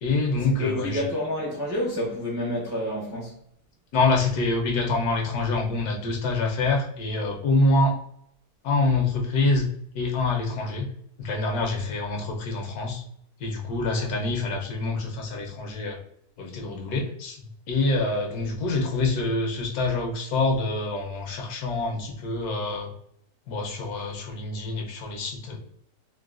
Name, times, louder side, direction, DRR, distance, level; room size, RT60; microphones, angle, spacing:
voice 1, 0.0-1.1 3.9-8.0 8.6-9.7 9.9-10.9 11.2-13.0 13.4-16.0 16.4-22.9 23.5-25.6, left 3 dB, 75° left, 1.1 m, -26 dB
voice 2, 0.6-3.4, left 1 dB, 20° right, 0.4 m, -28 dB
3.8 x 2.1 x 2.3 m
omnidirectional pair, 1.7 m